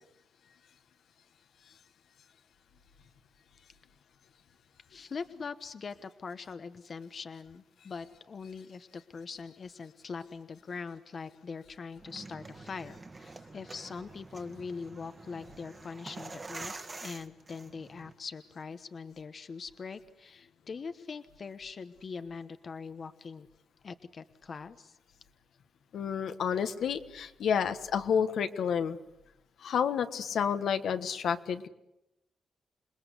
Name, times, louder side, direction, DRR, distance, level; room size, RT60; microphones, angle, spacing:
voice 1, 4.9-23.5 23.8-25.0, left 5 dB, 50° left, 10 dB, 1.1 m, -42 dB
sound 1, 12.0-18.1, right 3 dB, 30° right, 1.7 m, -46 dB
voice 2, 25.9-29.0 29.6-31.7, left 7 dB, 80° left, 8 dB, 1.4 m, -30 dB
27.5 x 20.5 x 8.2 m, 0.87 s
cardioid pair, 95°, 0 cm